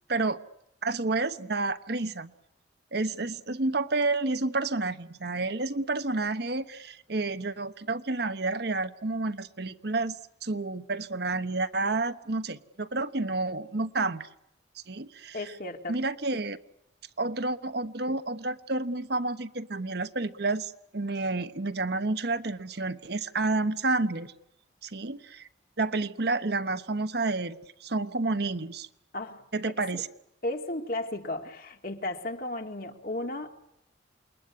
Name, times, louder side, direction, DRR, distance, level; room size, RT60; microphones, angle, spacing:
voice 1, 0.8-2.3 2.9-10.2 10.4-14.3 14.9-15.5 15.9-16.6 17.2-24.3 24.8-25.5 25.8-28.9 29.5-30.1, right 3 dB, 55° right, 11 dB, 1.1 m, -30 dB
voice 2, 15.3-16.0 16.3-16.4 29.1-29.4 29.8-30.0 30.4-33.5, left 2 dB, 50° left, 5 dB, 2.5 m, -34 dB
28.5 x 21.5 x 9.7 m, 0.83 s
head